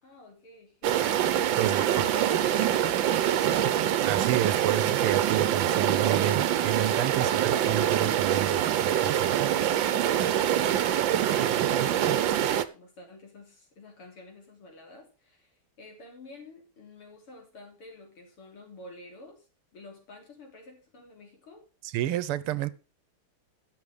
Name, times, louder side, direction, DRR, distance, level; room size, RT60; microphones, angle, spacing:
voice 1, 0.0-1.4 1.7-3.9 9.7-19.5 19.7-21.6, left 2 dB, 80° left, 4.6 m, -49 dB
sound 1, 0.8-12.6, right 10 dB, 65° right, 1.4 m, -25 dB
voice 2, 4.1-9.3 21.8-22.7, right 12 dB, 85° right, 1.7 m, -30 dB
12.0 x 8.1 x 5.2 m
omnidirectional pair, 2.4 m